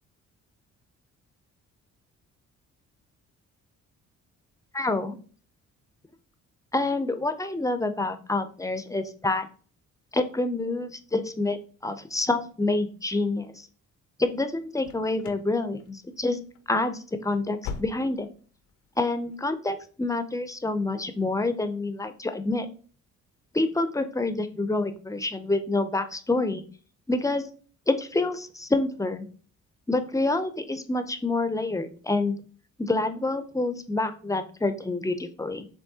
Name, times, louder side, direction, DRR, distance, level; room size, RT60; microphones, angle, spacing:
voice 1, 4.7-5.2 6.7-9.5 10.1-11.6 11.8-13.7 14.2-16.4 16.7-18.3 19.0-22.7 23.5-26.6 27.1-27.4 27.9-29.3 29.9-32.4 32.8-35.7, left 2 dB, 10° left, 9 dB, 0.4 m, -27 dB
sound 1, 14.8-15.5 15.8-16.2 16.5-16.7 17.1-18.4 18.7-18.8 19.3-19.4, left 6 dB, 85° left, 0.6 m, -40 dB
7.1 x 2.6 x 2.7 m, 0.43 s
cardioid pair, 90°, 30 cm